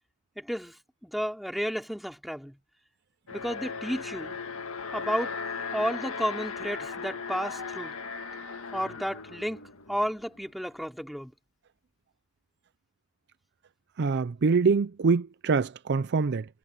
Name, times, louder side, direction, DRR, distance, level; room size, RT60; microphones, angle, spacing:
voice 1, 0.4-0.8 1.0-2.6 3.3-4.4 4.9-5.4 5.7-8.0 8.7-11.3, equal, ahead, 3.5 m, -32 dB
Alarm, 3.3-10.4, left 5 dB, 75° left, 1.9 m, -37 dB
voice 2, 14.0-16.5, right 4 dB, 50° right, 0.5 m, -24 dB
head